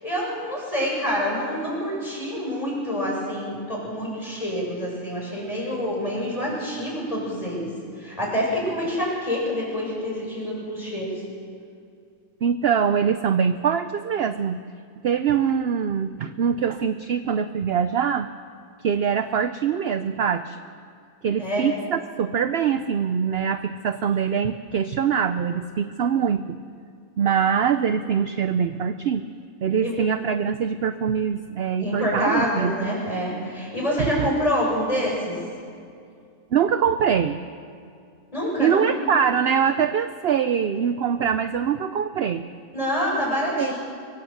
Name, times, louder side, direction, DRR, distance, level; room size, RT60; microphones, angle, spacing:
voice 1, 0.0-11.2 21.4-21.7 29.8-30.0 31.8-35.4 38.3-38.9 42.7-43.8, equal, 25° left, -4 dB, 7.4 m, -27 dB
voice 2, 12.4-14.6 15.0-18.3 18.8-20.6 21.2-26.6 27.2-29.2 29.6-32.9 34.2-34.3 36.5-37.4 38.6-42.5 43.6-43.7, right 7 dB, 60° right, 11 dB, 0.7 m, -23 dB
23.0 x 16.0 x 7.9 m, 2.4 s
omnidirectional pair, 1.5 m